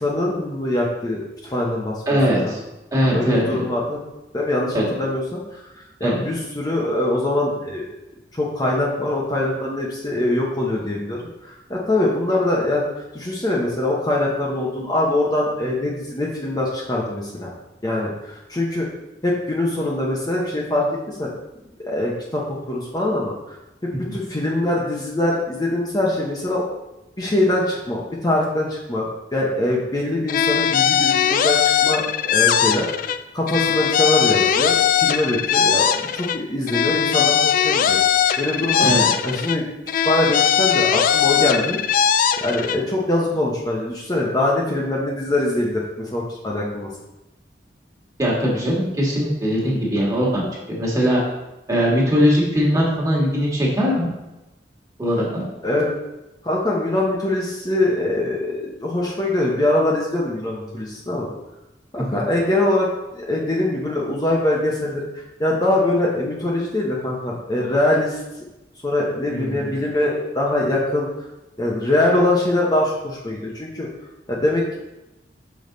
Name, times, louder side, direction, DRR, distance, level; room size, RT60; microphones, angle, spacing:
voice 1, 0.0-2.0 2.4-2.5 3.1-4.0 4.3-5.6 6.0-7.9 8.3-17.5 17.8-18.9 19.2-21.3 21.8-23.3 24.0-26.6 27.2-38.0 38.4-38.9 39.2-39.6 40.0-41.8 42.4-46.9 55.6-55.9 56.4-61.3 61.9-62.9 63.1-68.2 68.8-71.1 71.6-73.9 74.3-74.8, left 1 dB, 25° left, -3 dB, 0.9 m, -23 dB
voice 2, 2.1-2.6 2.9-3.6 4.7-4.8 6.0-6.2 24.0-24.1 38.8-39.1 48.2-51.2 51.7-54.1 55.0-55.4 62.0-62.1 69.3-69.8, equal, 20° right, -4 dB, 1.8 m, -20 dB
sound 1, 30.3-33.2 33.5-36.4 36.7-39.6 39.9-42.8, left 8 dB, 50° left, 0.3 m, -19 dB
6.0 x 5.3 x 3.9 m, 0.97 s
head